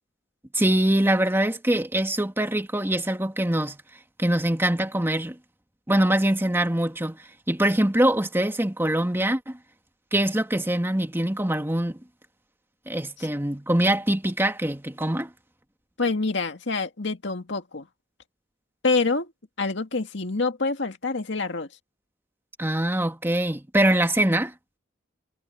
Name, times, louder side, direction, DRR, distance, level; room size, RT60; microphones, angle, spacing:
voice 1, 0.5-3.8 4.2-5.4 5.9-7.2 7.5-9.6 10.1-12.0 12.9-15.3 22.6-24.5, right 1 dB, 15° right, 2.0 m, -23 dB
voice 2, 16.0-17.9 18.8-19.3 19.6-21.7, left 3 dB, 70° left, 2.0 m, -26 dB
head